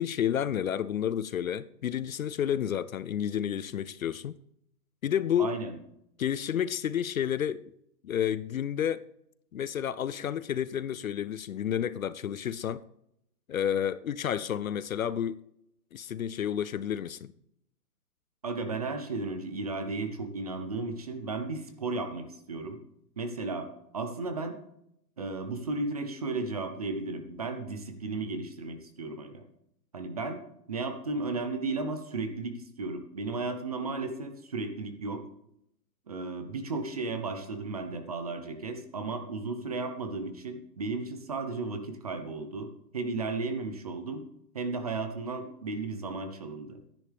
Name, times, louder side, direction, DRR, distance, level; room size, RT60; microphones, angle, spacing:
voice 1, 0.0-4.4 5.0-5.6 6.2-7.6 8.0-9.0 9.5-12.8 13.5-15.4 15.9-17.3, left 9 dB, 55° left, 0.5 m, -30 dB
voice 2, 5.4-5.8 18.4-22.8 23.2-23.7 23.9-24.6 25.2-29.4 29.9-30.4 30.7-35.2 36.1-42.7 42.9-44.2 44.5-46.8, right 3 dB, 25° right, 0.7 m, -34 dB
11.0 x 10.5 x 3.4 m
hypercardioid pair, 170°, 49 cm